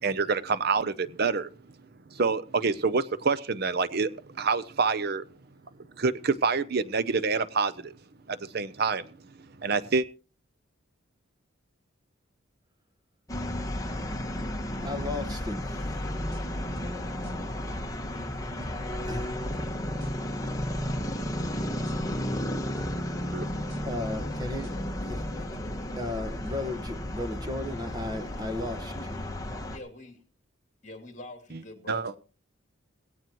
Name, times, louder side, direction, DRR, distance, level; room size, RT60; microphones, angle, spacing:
voice 1, 0.0-1.5 2.1-5.2 6.0-8.0 8.3-9.1 9.6-10.1 23.3-23.5 31.9-32.1, right 4 dB, 50° right, 0.7 m, -27 dB
sound 1, 13.3-29.8, equal, 15° left, 1.7 m, -33 dB
voice 2, 14.8-15.8 19.0-19.4 23.8-24.7 25.0-25.5 26.0-29.2, left 2 dB, 20° right, 1.5 m, -35 dB
sound 2, 16.3-16.9 17.2-17.4 17.7-18.3 18.6-18.8 19.1-19.6 20.0-20.2 20.4-21.0 21.4-21.6 21.8-22.4 22.8-22.9 23.2-23.8 24.1-24.3 24.6-25.2 25.5-25.7 26.0-26.6, equal, 65° right, 4.8 m, -45 dB
voice 3, 29.7-30.2 30.8-32.2, left 2 dB, 35° left, 2.8 m, -44 dB
18.5 x 17.0 x 3.1 m
head